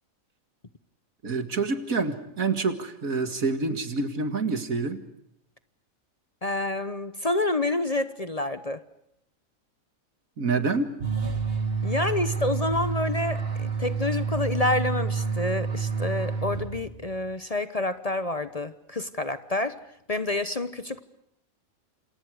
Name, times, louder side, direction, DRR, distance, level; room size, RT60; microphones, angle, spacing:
voice 1, 1.2-5.0 10.4-10.9, right 4 dB, 80° right, 9 dB, 2.5 m, -27 dB
voice 2, 6.4-8.8 11.8-19.8 20.1-21.0, left 2 dB, 30° left, 13 dB, 1.0 m, -28 dB
sound 1, 11.0-17.1, right 5 dB, 45° right, 2.3 m, -29 dB
28.0 x 28.0 x 4.9 m, 0.76 s
omnidirectional pair, 1.4 m